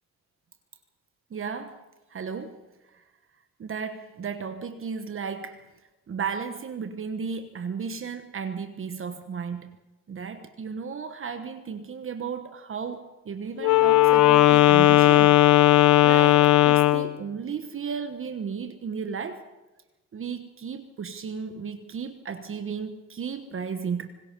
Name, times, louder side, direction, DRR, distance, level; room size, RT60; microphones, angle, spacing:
voice 1, 1.3-1.8 2.1-2.6 2.9-3.0 3.6-5.6 6.1-9.8 10.1-15.6 16.0-19.4 20.1-24.1, right 6 dB, 45° right, 8 dB, 1.2 m, -34 dB
Wind instrument woodwind instrument, 13.6-17.2, left 15 dB, 75° left, 1.0 m, -17 dB
26.5 x 19.5 x 5.3 m, 1.1 s
cardioid pair, 90°, 30 cm